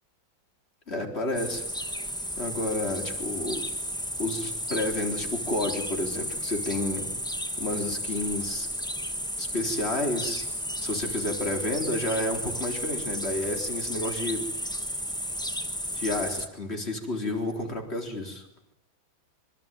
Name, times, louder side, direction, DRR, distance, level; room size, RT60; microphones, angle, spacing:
voice 1, 0.9-1.6 2.4-3.6 4.2-7.1 7.6-8.7 9.4-10.5 10.8-14.5 15.9-18.4, left 1 dB, 30° left, 3 dB, 4.2 m, -30 dB
sound 1, 1.3-16.5, equal, 5° left, 1.0 m, -33 dB
25.5 x 24.0 x 9.1 m, 0.78 s
omnidirectional pair, 2.2 m